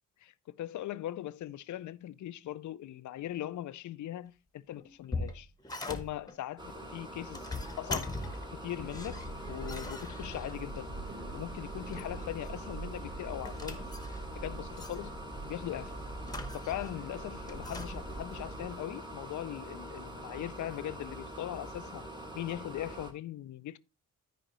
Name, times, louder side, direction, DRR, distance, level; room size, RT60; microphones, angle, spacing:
voice 1, 0.2-5.5 5.9-8.2 8.5-10.9 11.3-13.8 14.4-15.1 15.5-16.0 16.5-22.1 22.3-23.8, left 13 dB, 65° left, 0.5 m, -40 dB
sound 1, 4.7-6.3 7.1-8.6 8.9-10.8 11.7-12.5 12.8-14.4 14.8-15.0 16.2-17.0 17.5-17.9, left 2 dB, 10° left, 1.0 m, -41 dB
sound 2, 6.6-23.1, right 1 dB, 15° right, 1.2 m, -45 dB
sound 3, 8.7-18.7, right 2 dB, 30° right, 1.3 m, -44 dB
13.0 x 5.0 x 3.1 m
cardioid pair, 125°, 32 cm